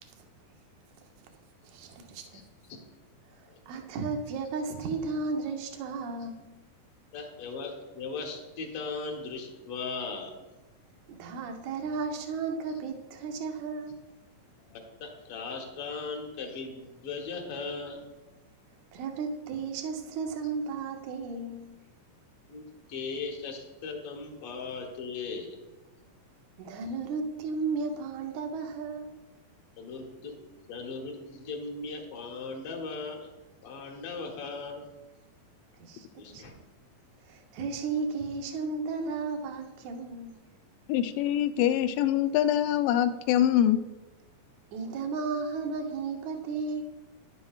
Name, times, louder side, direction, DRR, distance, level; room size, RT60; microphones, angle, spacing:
voice 1, 1.6-2.4 3.7-6.6 11.1-14.0 18.9-21.8 26.6-29.1 35.8-36.6 37.3-40.4 44.7-46.8, right 4 dB, 70° right, 1.9 m, -34 dB
voice 2, 7.1-10.3 14.6-18.1 22.5-25.6 29.8-30.4 30.6-33.3 33.6-34.9 36.2-36.5, left 4 dB, 60° left, 1.7 m, -38 dB
voice 3, 40.9-43.8, left 11 dB, 85° left, 2.2 m, -24 dB
11.0 x 11.0 x 2.4 m
omnidirectional pair, 4.1 m